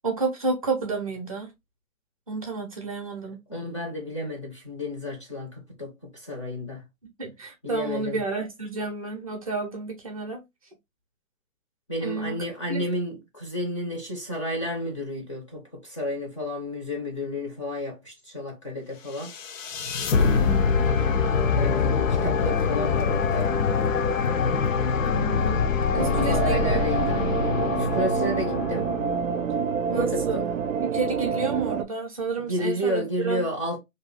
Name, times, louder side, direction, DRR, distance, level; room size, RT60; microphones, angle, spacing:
voice 1, 0.0-1.5 2.3-3.4 7.2-10.4 12.0-12.4 12.7-12.9 20.1-20.7 25.0-25.6 25.9-26.8 27.1-27.2 29.9-30.5 30.8-33.4, right 3 dB, 30° right, 0.6 m, -31 dB
voice 2, 3.5-6.8 7.6-8.2 11.9-19.4 21.5-23.5 26.0-27.3 27.8-28.9 29.9-30.6 32.4-33.8, equal, 25° left, 0.5 m, -31 dB
sound 1, 19.2-29.4, left 5 dB, 75° left, 0.7 m, -24 dB
sound 2, 25.9-31.8, right 6 dB, 80° right, 0.5 m, -27 dB
2.7 x 2.3 x 3.1 m
hypercardioid pair, 160°, 40 cm